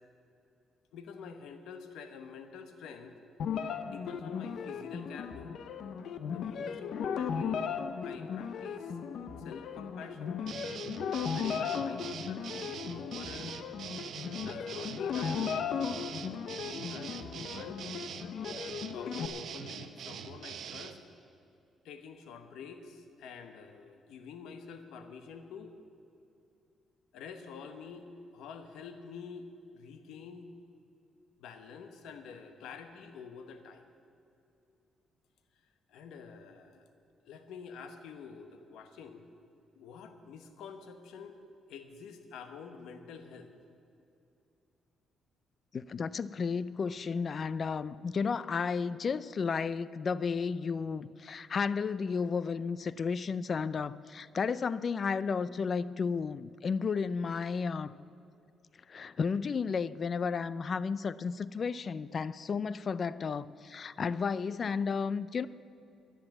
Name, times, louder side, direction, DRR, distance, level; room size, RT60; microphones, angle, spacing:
voice 1, 0.9-3.2 3.8-5.5 6.3-7.6 8.0-9.0 9.4-10.4 11.3-13.6 14.4-16.0 16.5-17.8 18.9-21.0 21.8-25.7 27.1-30.5 31.4-33.9 35.9-36.9 37.2-39.2 39.8-41.4 41.7-43.5, left 6 dB, 85° left, 7 dB, 1.1 m, -47 dB
sound 1, 3.4-19.3, left 7 dB, 65° left, 0.8 m, -36 dB
sound 2, 10.5-21.0, right 8 dB, 65° right, 0.8 m, -43 dB
voice 2, 45.7-57.9 58.9-65.5, left 5 dB, 45° left, 17 dB, 0.4 m, -33 dB
11.5 x 10.5 x 7.3 m, 2.6 s
cardioid pair, 90°, 0 cm